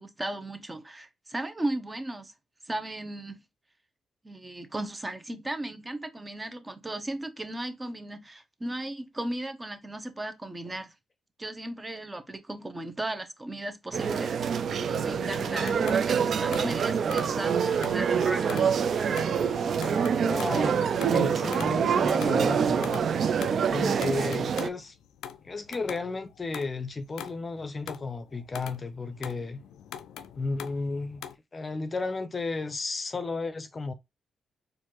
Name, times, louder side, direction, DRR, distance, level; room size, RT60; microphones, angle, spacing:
voice 1, 0.0-2.3 2.6-3.4 4.2-10.9 11.4-18.9, right 1 dB, 25° right, 0.8 m, -36 dB
sound 1, 13.9-24.7, right 7 dB, 65° right, 0.4 m, -26 dB
sound 2, 14.6-22.3, right 1 dB, 45° right, 1.7 m, -42 dB
sound 3, 15.7-18.1 18.5-31.4, left 9 dB, 85° left, 0.3 m, -44 dB
voice 2, 20.2-20.8 21.1-23.0 23.7-25.0 25.4-29.6 30.4-31.2 31.5-33.9, left 3 dB, 35° left, 0.5 m, -33 dB
4.4 x 2.6 x 2.9 m
supercardioid pair, 55°, 0 cm